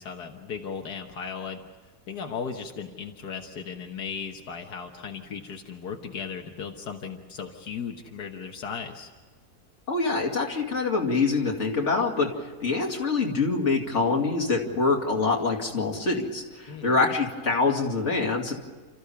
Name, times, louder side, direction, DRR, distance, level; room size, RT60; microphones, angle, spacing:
voice 1, 0.0-1.6 2.1-9.1 16.7-17.0, left 6 dB, 85° left, 3 dB, 1.9 m, -36 dB
voice 2, 9.9-12.3 12.6-18.5, left 4 dB, 45° left, 1 dB, 2.9 m, -25 dB
29.5 x 14.0 x 7.0 m, 1.5 s
omnidirectional pair, 1.7 m